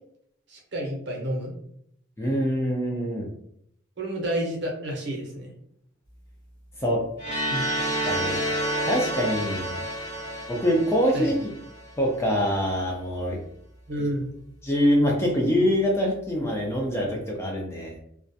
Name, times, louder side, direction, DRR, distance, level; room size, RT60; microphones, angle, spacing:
voice 1, 0.5-1.5 4.0-5.5 7.5-7.6 11.1-11.3 13.9-14.3, right 1 dB, 55° right, -1 dB, 0.7 m, -30 dB
voice 2, 2.2-3.3 6.8-7.1 8.0-8.4 8.8-9.8 10.5-11.5 12.0-13.4 14.6-18.0, equal, 15° left, -1 dB, 0.3 m, -24 dB
sound 1, 7.2-12.0, equal, 40° left, 1.1 m, -29 dB
2.3 x 2.1 x 2.6 m, 0.72 s
head